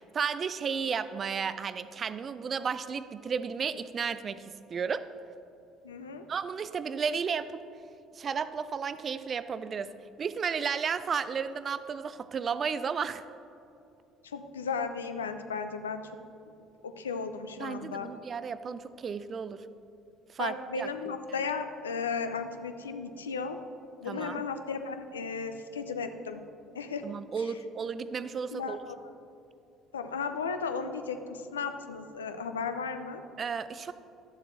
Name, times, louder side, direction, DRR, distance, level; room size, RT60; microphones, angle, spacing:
voice 1, 0.0-5.0 6.3-7.6 8.2-9.9 10.2-13.3 17.6-19.6 20.3-20.9 24.1-24.4 27.0-28.8 33.4-33.9, right 6 dB, 40° right, 13 dB, 0.4 m, -33 dB
voice 2, 5.8-6.2 14.2-16.1 16.8-18.1 20.4-23.6 24.0-26.4 26.7-27.1 27.4-27.5 28.5-29.1 29.9-33.2, left 5 dB, 85° left, 8 dB, 0.4 m, -35 dB
12.0 x 7.0 x 2.7 m, 2.7 s
hypercardioid pair, 55°, 0 cm